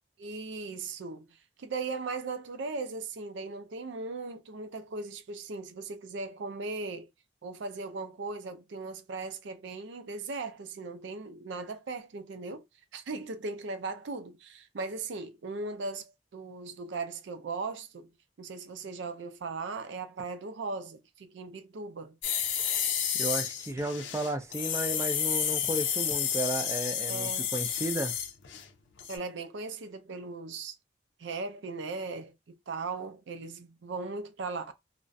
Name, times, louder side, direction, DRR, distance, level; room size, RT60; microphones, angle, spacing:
voice 1, 0.2-7.1 7.4-12.7 12.9-18.1 18.4-22.2 27.1-27.5 29.1-30.8 31.2-34.7, right 3 dB, 80° right, 0.4 m, -38 dB
sound 1, 22.2-28.7 29.0-29.2, left 8 dB, 85° left, 0.5 m, -31 dB
voice 2, 23.1-28.2, right 1 dB, 15° right, 0.3 m, -33 dB
2.4 x 2.1 x 2.5 m
head